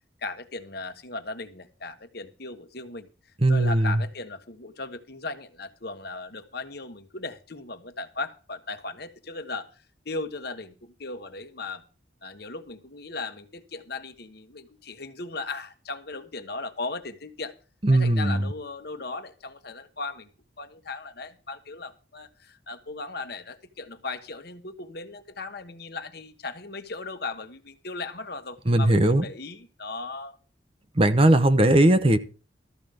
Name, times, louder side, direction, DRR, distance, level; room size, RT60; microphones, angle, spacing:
voice 1, 0.2-3.1 3.5-9.7 10.0-11.8 12.2-17.5 17.9-20.3 20.6-30.4, left 3 dB, 55° left, 8 dB, 1.3 m, -37 dB
voice 2, 3.4-4.0 17.8-18.4 28.7-29.2 31.0-32.2, right 1 dB, 30° right, 11 dB, 0.8 m, -19 dB
13.5 x 5.2 x 7.7 m, 0.35 s
head